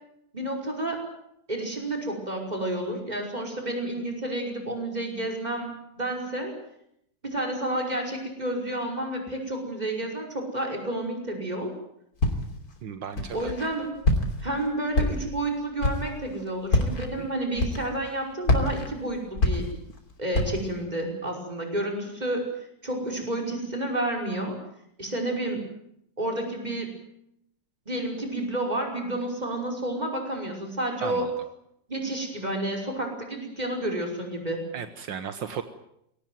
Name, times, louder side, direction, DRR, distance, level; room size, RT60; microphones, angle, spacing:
voice 1, 0.3-1.0 1.5-6.5 7.2-11.7 13.3-13.9 14.4-19.7 20.2-22.5 22.8-24.6 25.0-25.6 26.2-26.9 27.9-31.3 31.9-34.6, right 1 dB, 20° right, 2 dB, 5.5 m, -30 dB
Walk footsteps, 12.2-12.7 13.2-13.7 14.0-14.5 14.9-15.4 15.8-16.2 16.7-17.1 17.6-18.1 18.4-20.0 20.3-20.7, left 1 dB, 50° left, 3.7 m, -25 dB
voice 2, 12.8-13.5 17.2-17.3 31.0-31.3 34.7-35.6, right 7 dB, 75° right, 9 dB, 1.9 m, -35 dB
22.5 x 18.0 x 9.4 m, 0.76 s
omnidirectional pair, 2.0 m